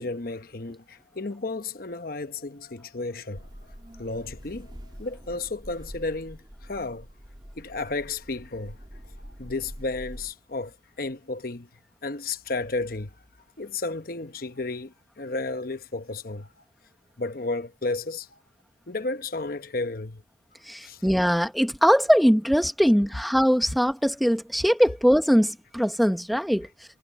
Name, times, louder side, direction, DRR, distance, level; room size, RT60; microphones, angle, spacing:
voice 1, 0.0-3.5 4.0-7.1 7.6-8.8 9.4-11.7 12.0-13.1 13.6-16.5 17.2-18.4 18.9-20.2 20.8-21.0 21.4-21.5, left 3 dB, 50° left, 1.0 m, -33 dB
sound 1, 3.3-10.3, equal, 25° right, 3.7 m, -45 dB
voice 2, 20.7-26.7, equal, ahead, 1.1 m, -21 dB
head